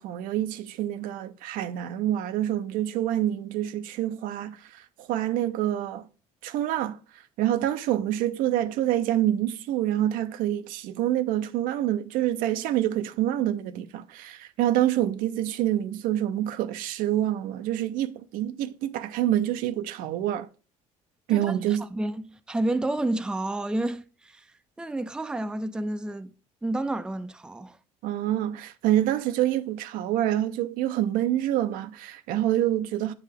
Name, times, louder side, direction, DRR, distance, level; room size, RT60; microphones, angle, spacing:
voice 1, 0.0-6.0 6.4-20.5 21.3-21.8 28.0-33.1, right 12 dB, 80° right, 0.5 m, -27 dB
voice 2, 21.8-26.3 26.6-27.8, right 1 dB, 5° right, 0.4 m, -30 dB
8.1 x 4.7 x 3.4 m
cardioid pair, 105°, 14 cm